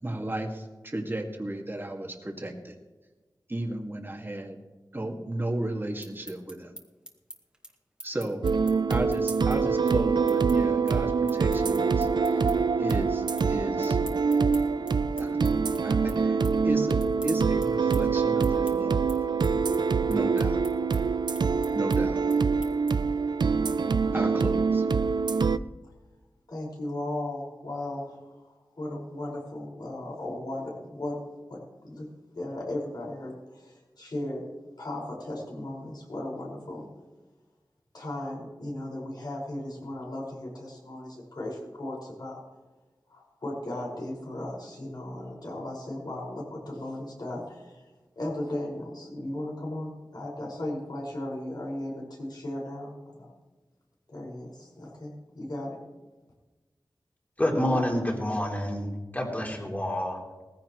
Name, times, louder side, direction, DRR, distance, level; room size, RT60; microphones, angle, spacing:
voice 1, 0.0-2.7 3.5-4.6 4.9-6.7 8.0-8.5 8.9-12.5 12.8-14.0 14.8-15.4 15.8-17.0 17.2-19.0 20.1-20.6 21.7-22.2 24.1-24.8, right 1 dB, 30° right, 1 dB, 2.1 m, -34 dB
sound 1, 5.8-12.5 12.9-13.5 13.8-23.2, right 1 dB, 10° right, 2.1 m, -46 dB
sound 2, 8.4-25.6, right 5 dB, 80° right, 0.4 m, -25 dB
voice 2, 26.5-31.2 31.5-32.1 32.3-34.4 34.8-36.9 37.9-42.4 43.1-47.9 48.2-53.3 54.1-55.8, left 1 dB, 65° left, -3 dB, 5.6 m, -36 dB
voice 3, 57.4-58.9 59.1-60.2, left 1 dB, 20° left, -1 dB, 3.4 m, -28 dB
19.5 x 15.5 x 3.2 m, 1.2 s
wide cardioid pair, 80°, 8 cm